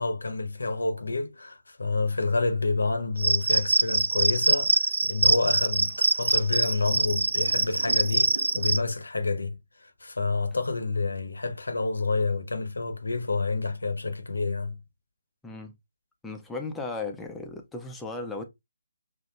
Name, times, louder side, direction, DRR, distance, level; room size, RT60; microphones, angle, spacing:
voice 1, 0.0-14.8, left 3 dB, 65° left, 0.9 m, -28 dB
Cricket, 3.2-8.8, right 3 dB, 60° right, 0.4 m, -24 dB
voice 2, 15.4-15.7 16.2-18.4, left 3 dB, 5° left, 0.7 m, -36 dB
6.0 x 2.8 x 2.2 m
figure-of-eight pair, 145°, 0 cm